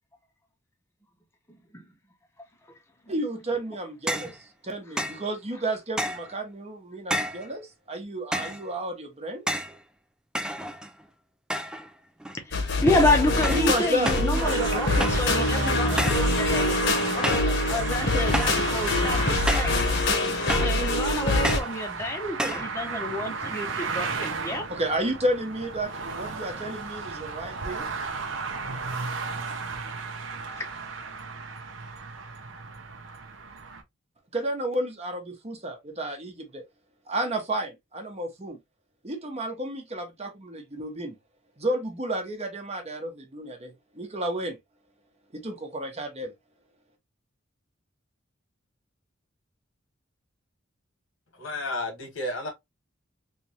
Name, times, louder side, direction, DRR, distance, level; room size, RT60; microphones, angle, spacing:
voice 1, 3.1-4.4 4.6-9.5 13.5-17.8 24.7-27.9 34.3-36.6 37.1-38.6 39.0-41.2 41.6-44.6 45.3-46.3, right 1 dB, 35° right, 1.0 m, -32 dB
sound 1, 4.1-4.4 5.0-5.2 6.0-6.3 7.1-7.5 8.3-8.6 9.5-9.8 10.3-11.0 11.5-11.9 12.2-12.7 13.4-13.7 14.0-14.3 15.0-15.3 16.0-16.3 17.2-17.6 18.3-18.6 19.5-19.8 20.5-20.8 21.4-21.7 22.4-22.7, equal, 5° right, 0.3 m, -30 dB
voice 2, 12.4-19.7 20.6-24.7 30.5-30.6, left 1 dB, 15° left, 0.8 m, -29 dB
sound 2, 12.5-21.6, left 2 dB, 60° left, 1.1 m, -25 dB
sound 3, 14.3-33.8, right 4 dB, 70° right, 0.8 m, -34 dB
voice 3, 51.3-52.5, left 1 dB, 90° left, 1.7 m, -32 dB
3.3 x 3.1 x 2.8 m
head